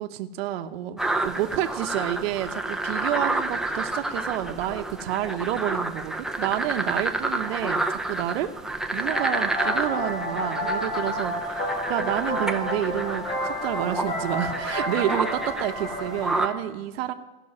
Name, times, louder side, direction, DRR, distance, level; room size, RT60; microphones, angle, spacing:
voice 1, 0.0-8.5 8.9-17.1, right 12 dB, 75° right, 7 dB, 1.0 m, -29 dB
sound 1, 1.0-16.5, right 2 dB, ahead, 0.7 m, -30 dB
sound 2, 9.1-16.6, equal, 50° left, 5.8 m, -30 dB
16.0 x 6.2 x 9.6 m, 1.1 s
supercardioid pair, 135°, 31 cm